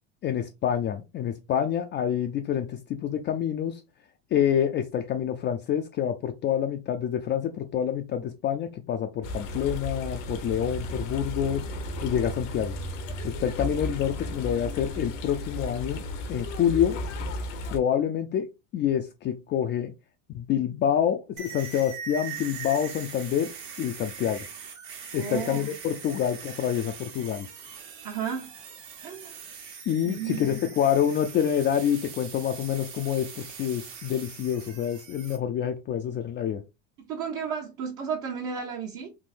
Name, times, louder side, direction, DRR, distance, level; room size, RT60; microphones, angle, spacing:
voice 1, 0.2-3.8 4.3-11.7 12.0-12.7 13.2-16.0 16.3-16.9 17.7-19.9 20.3-23.5 23.8-24.4 25.1-27.5 29.9-36.6, left 9 dB, 30° left, 0.4 m, -27 dB
sound 1, 9.2-17.8, equal, 80° left, 0.9 m, -34 dB
sound 2, 21.4-35.4, right 7 dB, 70° right, 1.3 m, -42 dB
voice 2, 25.1-25.7 28.0-28.5 29.0-29.4 30.0-30.5 37.1-39.1, right 7 dB, 55° right, 1.0 m, -33 dB
3.6 x 2.6 x 2.5 m
supercardioid pair, 95°, 37 cm